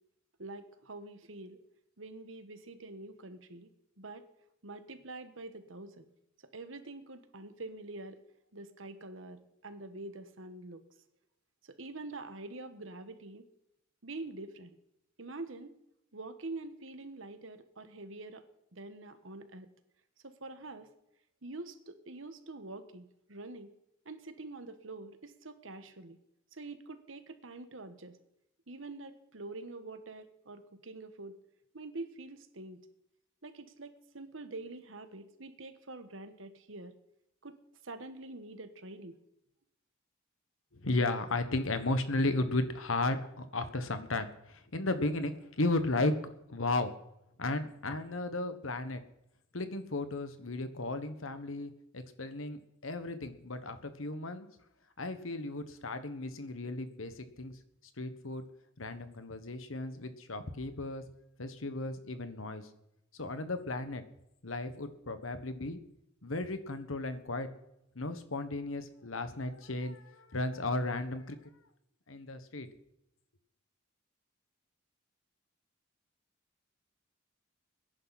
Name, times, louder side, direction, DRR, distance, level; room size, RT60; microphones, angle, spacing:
voice 1, 0.4-1.6 2.0-3.7 4.0-4.3 4.6-6.1 6.5-8.2 8.5-10.8 11.6-13.5 14.0-14.7 15.2-15.7 16.1-18.4 18.7-19.7 20.2-20.9 21.4-23.7 24.0-26.2 26.5-28.2 28.7-31.3 31.7-32.8 33.4-36.9 37.4-37.6 37.8-39.2, right 2 dB, 70° right, 9 dB, 1.4 m, -45 dB
voice 2, 40.7-46.1 46.5-46.9 47.4-49.0 49.5-54.5 55.0-57.5 58.0-58.4 58.8-61.0 61.4-62.7 63.2-64.0 64.4-65.8 66.2-67.5 67.9-71.4 72.1-72.7, left 2 dB, 80° left, 10 dB, 1.4 m, -34 dB
21.0 x 10.5 x 4.2 m, 0.83 s
head